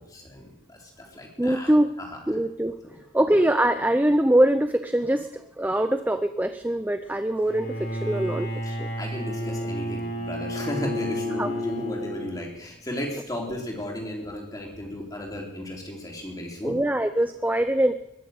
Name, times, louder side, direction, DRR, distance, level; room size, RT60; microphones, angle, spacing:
voice 1, 0.1-1.8 2.1-2.2 2.8-3.0 9.0-16.7, equal, 20° left, -1 dB, 3.4 m, -35 dB
voice 2, 1.4-1.9 2.3-2.7 3.1-8.9 11.4-11.5 16.6-17.9, right 1 dB, 10° right, 9 dB, 0.5 m, -23 dB
Bowed string instrument, 7.4-12.7, equal, 55° left, 3.6 m, -31 dB
21.5 x 7.6 x 7.8 m, 0.85 s
head